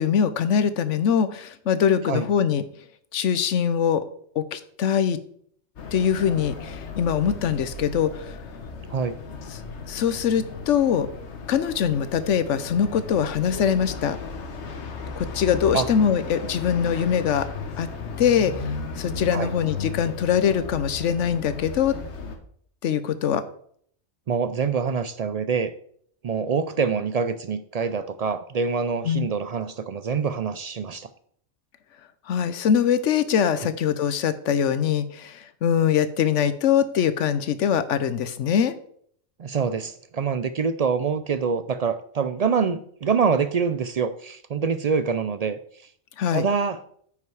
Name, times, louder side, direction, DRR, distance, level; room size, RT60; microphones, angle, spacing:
voice 1, 0.0-2.6 3.1-4.0 4.4-5.2 5.9-8.4 9.5-9.6 9.9-11.1 11.5-14.2 15.2-17.5 17.8-17.9 18.2-22.0 22.8-23.4 29.0-29.3 32.3-38.7 46.2-46.5, left 8 dB, 85° left, 13 dB, 1.1 m, -23 dB
sound 1, 5.8-22.4, left 4 dB, 70° left, 1.3 m, -35 dB
voice 2, 24.3-25.7 26.2-31.1 39.4-45.6 46.3-46.8, right 5 dB, 65° right, 12 dB, 0.4 m, -25 dB
9.3 x 5.7 x 4.7 m, 0.62 s
omnidirectional pair, 1.2 m